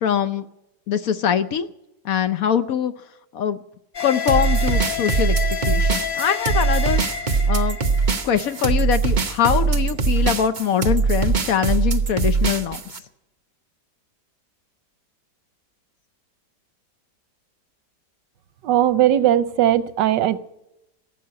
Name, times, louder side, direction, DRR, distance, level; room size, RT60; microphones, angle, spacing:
voice 1, 0.0-0.5 0.9-1.7 2.0-2.9 3.3-3.6 4.0-5.4 5.7-7.0 7.5-7.8 8.2-12.8, left 8 dB, 65° left, 11 dB, 1.0 m, -22 dB
sound 1, 3.9-9.3, left 7 dB, 85° left, 0.4 m, -30 dB
sound 2, 4.3-13.0, right 4 dB, 35° right, 0.8 m, -21 dB
voice 2, 18.6-20.4, right 11 dB, 85° right, 14 dB, 1.4 m, -18 dB
17.0 x 7.7 x 9.4 m, 0.89 s
omnidirectional pair, 1.9 m